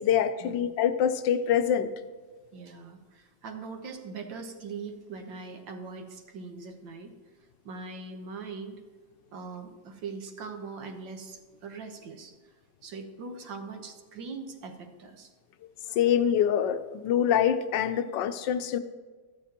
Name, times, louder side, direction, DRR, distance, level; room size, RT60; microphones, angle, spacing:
voice 1, 0.0-1.9 15.9-18.8, left 9 dB, 75° left, 11 dB, 1.3 m, -25 dB
voice 2, 2.5-7.1 7.6-8.8 9.3-12.3 12.8-15.3, right 4 dB, 75° right, 5 dB, 1.8 m, -41 dB
13.5 x 12.5 x 2.9 m, 1.4 s
omnidirectional pair, 2.0 m